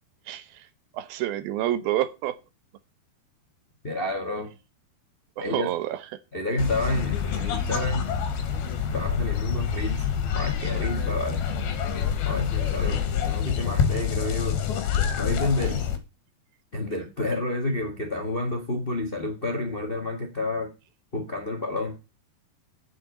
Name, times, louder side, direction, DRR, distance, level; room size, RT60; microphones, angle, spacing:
voice 1, 0.3-0.7 0.9-2.4 5.4-6.0, right 13 dB, 75° right, 2.7 m, -28 dB
voice 2, 3.8-4.5 5.4-5.7 6.3-8.1 8.8-10.1 10.3-11.4 12.2-14.6 15.2-15.9 16.7-20.7 21.1-22.0, left 2 dB, 50° left, 0.6 m, -29 dB
sound 1, 6.6-16.0, left 7 dB, 80° left, 3.5 m, -27 dB
8.1 x 7.3 x 8.4 m
omnidirectional pair, 4.4 m